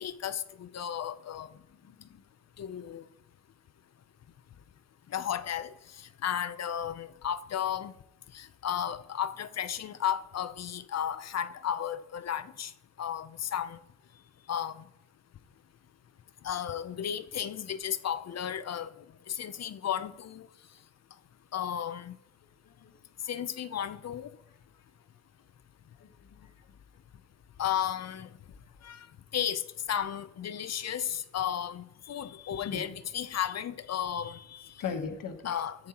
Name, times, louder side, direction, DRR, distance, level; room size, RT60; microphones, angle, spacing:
voice 1, 0.0-1.5 2.6-3.1 5.1-7.9 8.3-12.7 13.0-13.8 14.5-14.8 16.4-18.9 19.3-20.5 21.5-22.2 23.3-24.3 27.6-28.3 28.8-29.1 29.3-34.7 35.4-35.9, left 9 dB, 50° left, 0.5 m, -34 dB
voice 2, 1.8-2.2 22.7-22.9 26.0-26.5 32.7-32.8 34.8-35.6, left 6 dB, 75° left, 1.2 m, -38 dB
14.0 x 9.0 x 2.9 m
wide cardioid pair, 120°, 33 cm